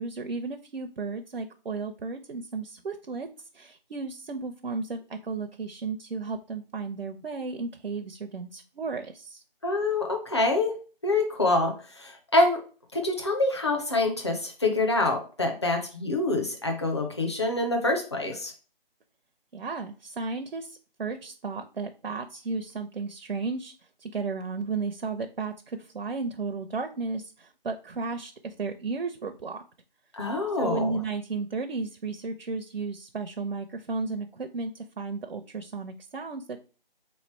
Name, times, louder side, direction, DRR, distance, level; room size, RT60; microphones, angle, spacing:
voice 1, 0.0-9.4 19.5-23.7 24.0-29.6 30.6-36.6, right 4 dB, 75° right, 6 dB, 0.6 m, -34 dB
voice 2, 9.6-10.8 11.0-12.6 12.9-18.5 30.1-31.0, left 2 dB, 30° left, 2 dB, 0.7 m, -26 dB
3.9 x 3.1 x 4.3 m, 0.37 s
figure-of-eight pair, 170°, 29 cm